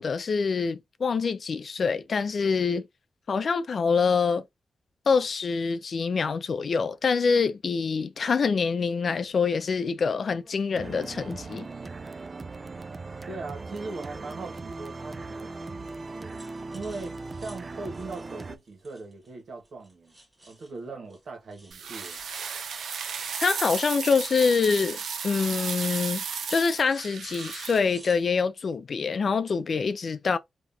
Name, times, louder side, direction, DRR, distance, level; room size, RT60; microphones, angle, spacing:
voice 1, 0.0-2.9 3.3-4.4 5.1-11.7 23.4-25.0 25.2-26.2 26.5-30.4, left 5 dB, 55° left, 0.5 m, -25 dB
sound 1, 8.6-8.8 10.3-10.6 11.0-11.9 12.4-13.3 15.0-15.4 16.3-19.3 19.6-20.8 21.1-21.2 21.5-28.3, right 1 dB, 20° right, 1.8 m, -53 dB
sound 2, 10.7-18.6, right 3 dB, 35° right, 0.4 m, -39 dB
voice 2, 13.3-16.4 16.7-20.2 20.4-22.2, right 3 dB, 70° right, 1.6 m, -40 dB
sound 3, 21.7-27.8, right 6 dB, 90° right, 0.7 m, -34 dB
3.9 x 3.0 x 2.7 m
cardioid pair, 85°, 0 cm